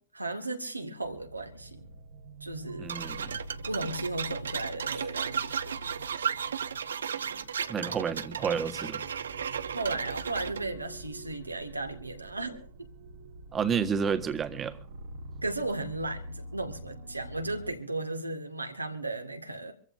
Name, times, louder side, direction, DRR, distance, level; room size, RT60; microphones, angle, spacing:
voice 1, 0.1-1.9 2.4-3.0 3.7-5.8 9.7-12.7 15.4-19.7, right 2 dB, 85° right, 5 dB, 2.1 m, -35 dB
sound 1, 1.0-17.7, right 2 dB, 55° right, 1.6 m, -46 dB
voice 2, 2.8-3.4 7.7-9.0 13.5-14.8, right 6 dB, 20° right, 9 dB, 1.5 m, -30 dB
sound 2, 2.9-10.6, right 7 dB, 70° right, 0.8 m, -34 dB
26.0 x 14.5 x 2.7 m, 0.44 s
figure-of-eight pair, 100°, 0 cm